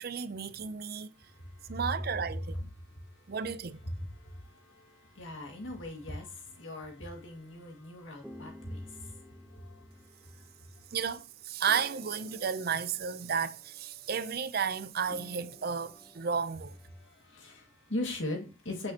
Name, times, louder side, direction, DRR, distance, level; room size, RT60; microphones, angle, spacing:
voice 1, 0.0-1.1 1.7-2.7 3.3-3.8 10.9-16.8, right 6 dB, 55° right, 0.5 m, -33 dB
voice 2, 1.2-1.8 2.8-3.4 3.9-10.5 17.0-18.9, left 1 dB, 80° left, 2.1 m, -41 dB
sound 1, 7.1-11.3 11.6-17.1, equal, 5° left, 0.9 m, -54 dB
8.6 x 6.2 x 2.9 m
head